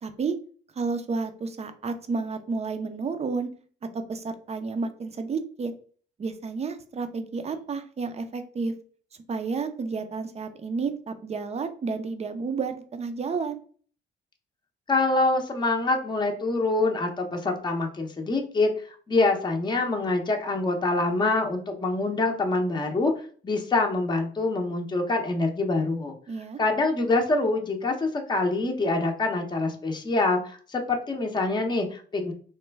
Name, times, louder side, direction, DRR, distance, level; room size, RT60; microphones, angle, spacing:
voice 1, 0.0-0.4 0.8-3.5 3.9-5.7 6.2-8.7 9.3-13.6 26.3-26.6, right 4 dB, 30° right, 8 dB, 0.5 m, -31 dB
voice 2, 14.9-18.7 19.1-23.1 23.4-26.1 26.6-32.3, left 2 dB, 20° left, 3 dB, 0.7 m, -25 dB
3.2 x 2.1 x 3.3 m, 0.44 s
cardioid pair, 90°, 20 cm